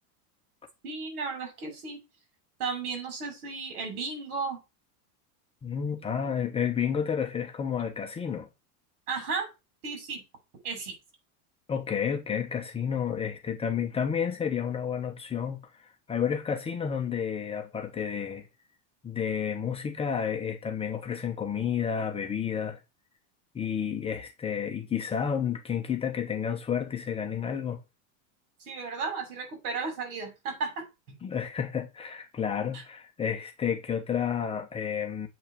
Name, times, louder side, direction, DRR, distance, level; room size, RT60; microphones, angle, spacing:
voice 1, 0.8-2.0 2.6-4.6 9.1-9.5 9.8-10.2 10.6-10.9 28.6-30.9 32.7-32.8, right 4 dB, 80° right, 6.6 m, -34 dB
voice 2, 5.6-8.5 11.7-18.5 19.0-22.8 23.5-27.8 31.2-35.3, left 7 dB, 15° left, 0.9 m, -31 dB
8.1 x 5.6 x 7.3 m
supercardioid pair, 175°, 44 cm